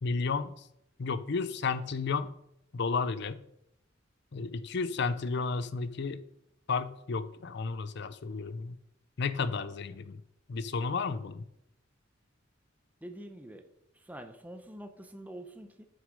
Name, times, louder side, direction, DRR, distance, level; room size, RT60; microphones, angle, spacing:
voice 1, 0.0-0.5 1.0-2.3 2.7-3.4 4.3-6.2 6.7-8.8 9.2-10.2 10.5-11.5, left 4 dB, 60° left, 14 dB, 0.6 m, -32 dB
voice 2, 13.0-13.6 14.0-15.9, right 1 dB, 10° right, 6 dB, 0.8 m, -45 dB
7.3 x 6.3 x 5.2 m, 0.78 s
head